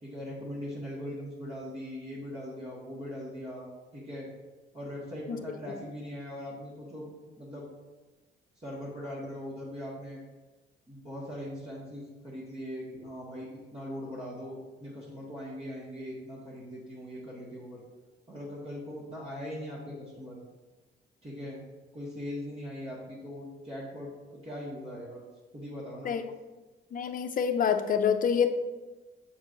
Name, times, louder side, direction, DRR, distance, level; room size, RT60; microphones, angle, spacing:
voice 1, 0.0-4.3 4.7-7.1 7.4-7.7 8.6-10.2 10.9-17.8 18.3-20.4 21.2-21.6 21.9-25.2 25.5-26.1, equal, 30° right, -8 dB, 1.8 m, -40 dB
voice 2, 26.9-28.5, left 7 dB, 45° left, 7 dB, 0.6 m, -26 dB
7.0 x 5.4 x 2.7 m, 1.2 s
cardioid pair, 90°, 20 cm